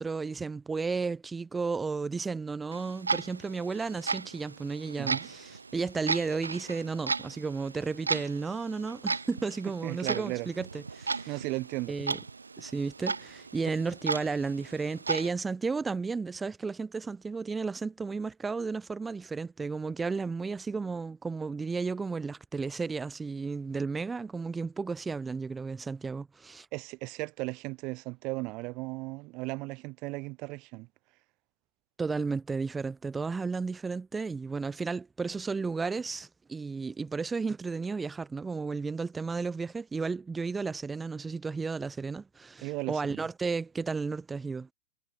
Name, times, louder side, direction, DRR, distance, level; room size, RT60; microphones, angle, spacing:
voice 1, 0.0-11.3 11.9-12.2 12.6-26.7 32.0-44.7, right 4 dB, 15° right, 1.3 m, -33 dB
Clock, 2.7-15.3, right 4 dB, 75° right, 1.8 m, -36 dB
voice 2, 5.0-5.3 9.8-10.5 11.3-11.9 26.7-30.9 42.6-43.2, right 24 dB, 40° right, 4.3 m, -36 dB
figure-of-eight pair, 90°, 0 cm